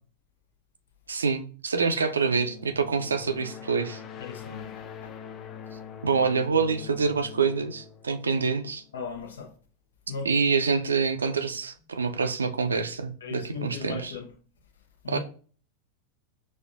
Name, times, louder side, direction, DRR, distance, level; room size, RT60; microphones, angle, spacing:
voice 1, 1.1-4.0 6.0-8.8 10.3-14.1 15.1-15.2, right 5 dB, 75° right, 0.4 m, -26 dB
sound 1, 2.3-9.0, left 8 dB, 30° left, 0.4 m, -43 dB
voice 2, 4.2-5.1 8.9-9.5 10.1-10.3 13.2-14.3 15.0-15.2, left 5 dB, 65° left, 0.8 m, -37 dB
6.2 x 2.4 x 2.4 m
figure-of-eight pair, 90°, 0 cm